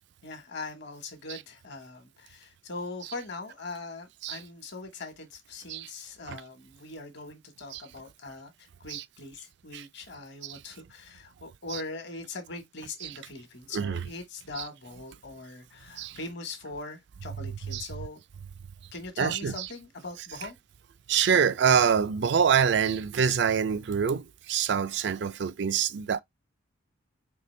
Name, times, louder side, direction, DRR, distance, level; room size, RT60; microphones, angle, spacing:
voice 1, 0.2-18.2 18.9-20.5, left 3 dB, 60° left, 1.2 m, -41 dB
voice 2, 19.2-19.5 21.1-26.2, right 7 dB, 60° right, 0.3 m, -25 dB
4.3 x 2.9 x 3.2 m
head